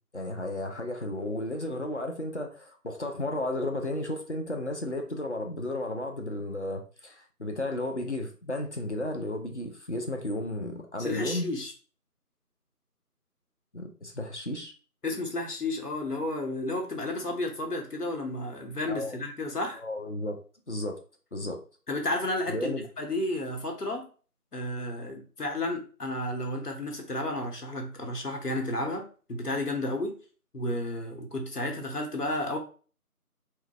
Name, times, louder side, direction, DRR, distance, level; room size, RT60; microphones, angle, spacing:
voice 1, 0.1-11.5 13.7-14.7 18.9-19.2 19.8-20.4 20.7-21.0 21.3-21.6 22.5-22.9, left 1 dB, 50° left, 4 dB, 0.6 m, -33 dB
voice 2, 11.0-11.7 15.0-19.8 21.9-24.1 24.5-29.0 29.3-30.1 30.5-32.6, left 1 dB, 90° left, 2 dB, 1.1 m, -32 dB
4.6 x 2.2 x 2.3 m, 0.39 s
figure-of-eight pair, 170°, 45 cm